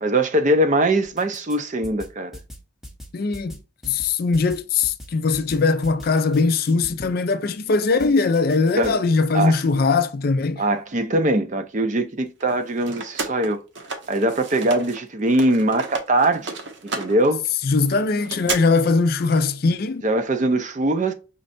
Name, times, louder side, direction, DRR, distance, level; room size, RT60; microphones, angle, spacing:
voice 1, 0.0-2.3 8.8-9.0 9.3-9.6 10.6-13.6 14.1-16.5 17.0-17.4 20.0-21.1, right 1 dB, 35° right, 0.5 m, -21 dB
sound 1, 1.0-1.6 1.8-7.1 8.0-8.9, equal, ahead, 0.7 m, -41 dB
voice 2, 3.1-3.6 3.8-10.6 17.6-20.0, left 4 dB, 45° left, 0.4 m, -20 dB
sound 2, 12.4-15.0 15.3-18.6, right 4 dB, 60° right, 0.8 m, -32 dB
5.2 x 3.2 x 2.5 m
head